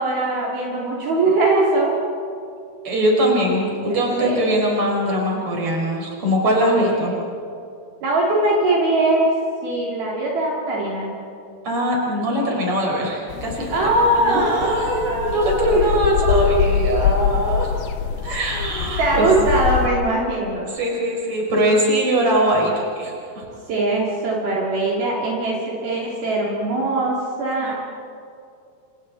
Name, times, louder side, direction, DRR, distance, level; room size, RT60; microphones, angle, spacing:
voice 1, 0.0-1.9 3.9-4.6 6.7-7.1 8.0-9.3 9.6-11.1 12.5-12.6 13.7-15.9 19.0-20.7 23.7-27.7, right 2 dB, 65° right, -5 dB, 4.8 m, -21 dB
voice 2, 2.8-7.2 11.6-13.8 14.2-17.8 18.2-19.3 20.6-23.5 27.6-27.7, equal, 35° right, -1 dB, 5.9 m, -21 dB
sound 1, 13.3-19.9, left 8 dB, 75° left, 2.7 m, -24 dB
29.0 x 28.5 x 4.2 m, 2.5 s
omnidirectional pair, 4.7 m